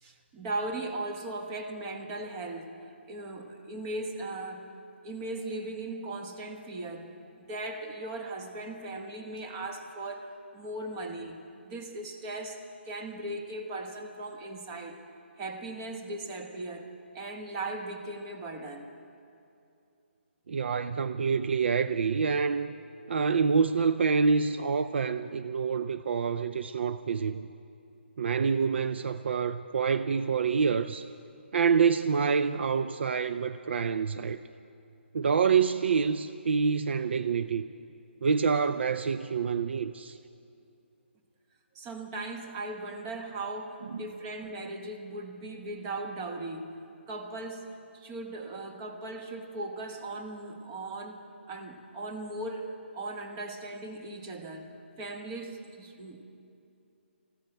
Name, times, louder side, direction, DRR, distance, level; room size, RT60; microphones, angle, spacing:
voice 1, 0.0-4.7 5.0-15.0 15.4-18.9 41.7-46.8 47.1-47.7 47.9-54.7 55.0-56.2, right 2 dB, 20° right, 4 dB, 1.1 m, -38 dB
voice 2, 20.5-22.8 23.1-27.5 28.2-31.1 31.5-34.4 35.1-37.6 38.2-40.2 43.9-44.1, right 5 dB, 60° right, 11 dB, 0.4 m, -27 dB
20.5 x 15.0 x 4.5 m, 2.6 s
hypercardioid pair, 160°, 7 cm